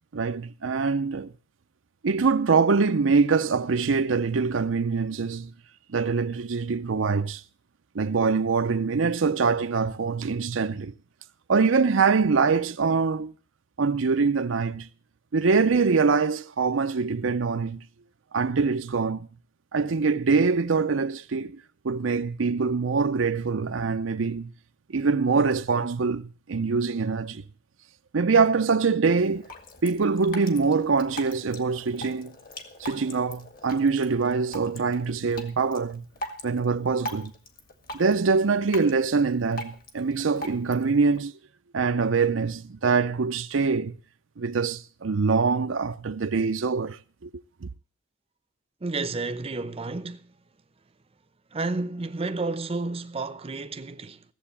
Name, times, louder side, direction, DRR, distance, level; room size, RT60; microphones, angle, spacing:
voice 1, 0.1-1.3 2.0-5.5 5.9-7.4 7.9-10.9 11.5-13.3 13.8-14.9 15.3-17.8 18.3-19.3 19.7-24.5 24.9-27.4 28.1-29.5 29.8-32.3 32.8-36.1 36.4-37.3 37.9-41.3 41.7-44.0 44.4-47.3 47.6-47.7, right 4 dB, 85° right, 0.6 m, -24 dB
Drip, 29.2-41.2, left 1 dB, 50° left, 1.9 m, -42 dB
voice 2, 48.8-50.3 51.5-54.2, right 3 dB, 30° right, 0.7 m, -31 dB
15.5 x 7.7 x 7.1 m
head